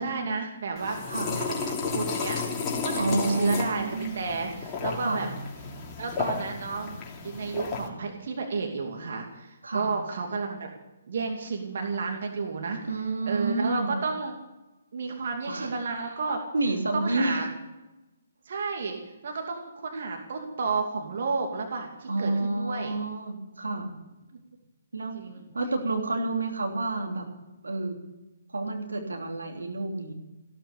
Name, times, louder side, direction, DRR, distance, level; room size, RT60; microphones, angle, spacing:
voice 1, 0.0-1.0 1.4-2.4 2.8-5.3 6.0-7.0 7.2-10.7 11.1-12.8 13.3-14.4 14.9-16.4 16.9-17.4 18.4-23.0 25.1-25.5, right 4 dB, 55° right, 2 dB, 2.6 m, -32 dB
sound 1, 0.8-7.9, left 4 dB, 20° left, 2.9 m, -33 dB
voice 2, 3.0-4.1 5.0-5.3 9.6-9.9 12.8-13.9 15.5-15.7 16.5-17.4 22.1-23.9 24.9-25.2 25.5-27.2 27.6-28.0 28.5-30.1, right 2 dB, 80° right, 2 dB, 3.1 m, -29 dB
15.5 x 13.0 x 6.8 m, 1.0 s
figure-of-eight pair, 135°, 0 cm